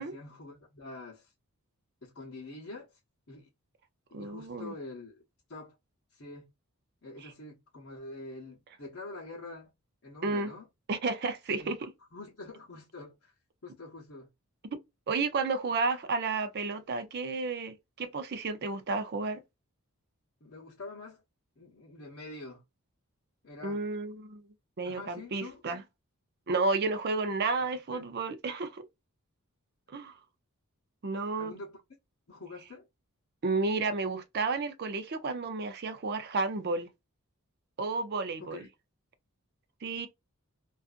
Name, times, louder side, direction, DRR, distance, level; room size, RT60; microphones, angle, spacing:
voice 1, 0.0-1.3 2.0-3.0 3.3-3.5 4.1-5.2 5.5-5.8 6.1-6.5 7.0-9.7 10.0-10.7 11.5-13.3 13.6-14.3 15.2-15.3 20.4-21.2 21.6-22.6 23.4-23.8 24.8-25.6 27.9-28.1 31.4-31.8 32.3-32.9 38.4-38.7, left 2 dB, 55° left, 0.8 m, -46 dB
voice 2, 4.1-4.7 7.2-7.3 10.2-10.5 10.9-11.9 15.1-19.4 23.6-24.4 24.8-25.8 26.5-28.9 29.9-30.2 31.0-31.5 33.4-36.9 37.8-38.6 39.8-40.1, right 3 dB, 45° right, 0.5 m, -32 dB
2.5 x 2.4 x 2.4 m
head